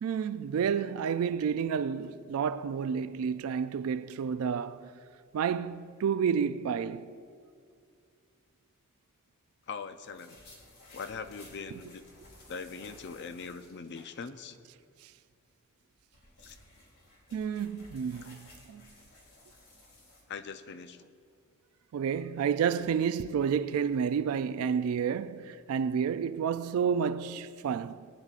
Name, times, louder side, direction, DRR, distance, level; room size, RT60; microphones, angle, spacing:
voice 1, 0.0-4.9 5.3-7.1 11.7-11.8 17.3-18.9 21.9-28.1, right 7 dB, 75° right, 0.3 m, -30 dB
voice 2, 9.7-10.4 10.9-12.0 12.5-14.6 16.4-16.6 20.3-21.1, left 5 dB, 55° left, 0.5 m, -41 dB
sound 1, 10.0-14.5 14.8-14.9 15.8-20.2, left 1 dB, 90° left, 2.5 m, -56 dB
19.5 x 9.6 x 2.4 m
head